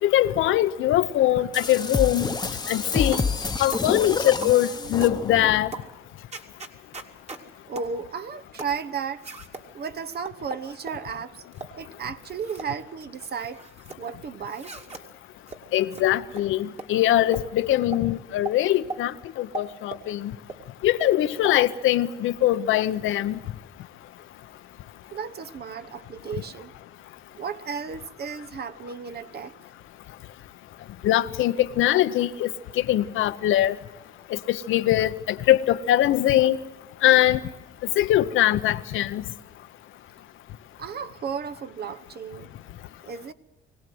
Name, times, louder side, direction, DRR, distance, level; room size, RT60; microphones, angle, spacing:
voice 1, 0.0-2.3 2.7-3.2 3.6-5.7 15.7-20.3 20.8-23.4 31.0-32.5 32.8-33.8 34.3-36.6 37.0-37.4 38.0-39.2, left 13 dB, 85° left, 11 dB, 0.9 m, -22 dB
sound 1, 1.5-5.7, left 4 dB, 20° left, 1.0 m, -29 dB
sound 2, 3.1-3.3 3.7-3.9 4.4-4.6 5.0-5.2 5.7-5.9 6.3-7.4 7.8-7.9 8.6-8.8 9.2-9.7 10.3-11.0 11.5-11.8 12.2-12.7 13.0-14.0 14.5-15.0 15.5-15.6 15.9-16.0 16.3-16.4 16.8-16.9 17.3-17.5 17.9-18.0 18.5-18.6 18.9-19.0 19.5-20.1 20.5-20.6 21.0-21.1 21.4-21.6, right 3 dB, 35° right, 2.4 m, -38 dB
voice 2, 7.7-9.3 9.7-11.5 11.8-13.6 14.0-14.7 25.1-26.7 27.3-29.6 40.8-42.5 43.0-43.3, right 6 dB, 55° right, 10 dB, 1.0 m, -34 dB
23.5 x 17.5 x 7.8 m, 1.1 s
cardioid pair, 90°, 20 cm